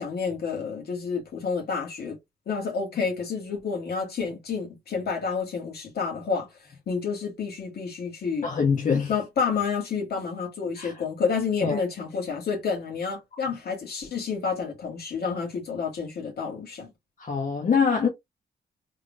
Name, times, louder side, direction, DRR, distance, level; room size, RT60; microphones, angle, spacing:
voice 1, 0.0-2.2 2.5-6.5 6.9-8.5 9.1-16.9, left 5 dB, 65° left, 2.0 m, -29 dB
voice 2, 8.4-9.1 10.8-10.9 11.6-11.8 17.2-18.1, left 6 dB, 50° left, 1.3 m, -24 dB
3.6 x 3.6 x 2.4 m
cardioid pair, 100°, 18 cm